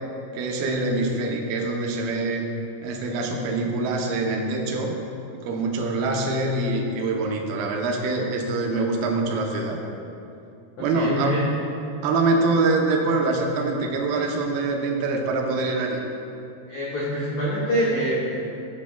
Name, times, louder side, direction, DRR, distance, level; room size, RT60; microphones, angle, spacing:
voice 1, 0.3-2.5 2.8-4.9 5.3-9.8 10.8-11.4 12.0-16.0, right 3 dB, 75° right, 1 dB, 2.3 m, -24 dB
voice 2, 10.9-11.5 16.7-18.5, equal, 90° left, -8 dB, 1.5 m, -25 dB
13.0 x 7.2 x 2.3 m, 2.7 s
omnidirectional pair, 5.1 m